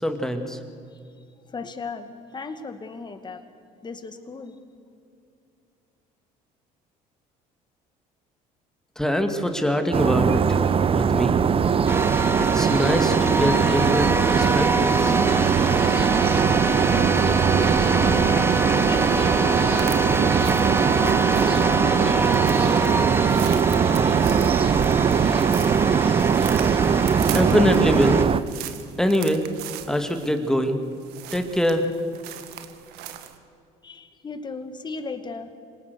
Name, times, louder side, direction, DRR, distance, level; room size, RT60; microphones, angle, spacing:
voice 1, 0.0-0.6 9.0-10.6 10.9-11.4 12.4-15.1 27.2-28.2 29.0-29.4 29.9-30.8 31.3-31.8, equal, 5° left, 6 dB, 2.3 m, -23 dB
voice 2, 1.5-3.4 3.8-4.6 18.0-18.6 18.9-20.3 20.6-22.4 33.8-35.5, left 4 dB, 25° left, 8 dB, 2.1 m, -37 dB
sound 1, 9.9-28.4, right 7 dB, 35° right, 0.8 m, -21 dB
sound 2, 11.9-28.2, right 2 dB, 15° right, 1.6 m, -26 dB
sound 3, 19.8-33.4, right 12 dB, 80° right, 1.6 m, -40 dB
26.5 x 18.5 x 6.9 m, 2.5 s
supercardioid pair, 90°, 16 cm